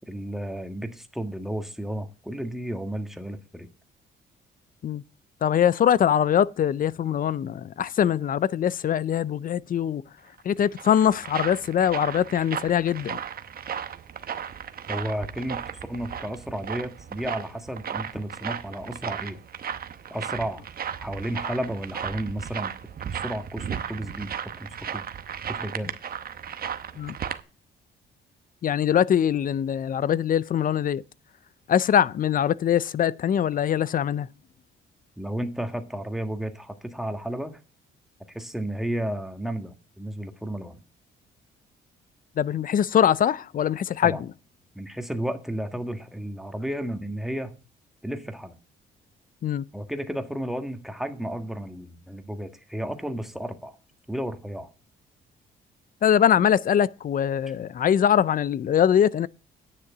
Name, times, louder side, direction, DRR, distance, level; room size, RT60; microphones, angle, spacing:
voice 1, 0.1-3.7 14.9-15.6 15.9-19.4 20.1-20.6 21.0-22.7 23.1-25.1 25.5-25.9 35.2-37.6 38.3-40.8 44.0-44.2 44.7-47.5 48.0-48.5 49.7-53.8 54.1-54.7, right 1 dB, ahead, 1.5 m, -32 dB
voice 2, 5.4-10.0 10.4-13.2 27.0-27.2 28.6-31.0 31.7-34.3 42.4-44.3 49.4-49.6 56.0-59.3, left 9 dB, 45° left, 0.4 m, -22 dB
sound 1, 10.4-27.4, right 8 dB, 50° right, 0.9 m, -35 dB
10.0 x 6.7 x 6.0 m
cardioid pair, 90°, 20 cm